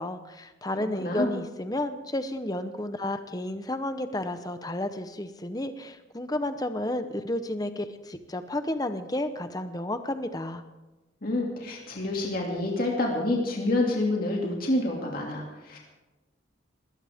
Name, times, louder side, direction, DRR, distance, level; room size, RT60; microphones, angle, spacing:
voice 1, 0.0-10.6, left 1 dB, 20° left, 9 dB, 0.9 m, -32 dB
voice 2, 1.0-1.3 11.2-15.8, left 2 dB, 45° left, -1 dB, 2.6 m, -28 dB
21.0 x 17.0 x 3.6 m, 1.1 s
head